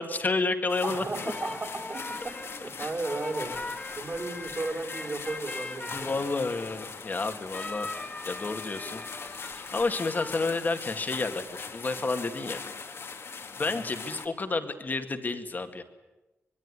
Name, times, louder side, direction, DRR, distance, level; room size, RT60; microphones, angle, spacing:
voice 1, 0.0-1.0 5.9-7.9 8.3-9.0 9.7-12.6 13.6-15.8, left 3 dB, 40° left, 7 dB, 2.1 m, -30 dB
sound 1, 0.7-14.3, left 5 dB, 65° left, 2.3 m, -41 dB
voice 2, 0.8-6.3 13.6-13.9, right 3 dB, 40° right, 0 dB, 4.4 m, -35 dB
sound 2, 1.2-10.3, left 2 dB, 20° left, 2.3 m, -41 dB
24.5 x 22.0 x 9.8 m, 1.1 s
wide cardioid pair, 150°, 5 cm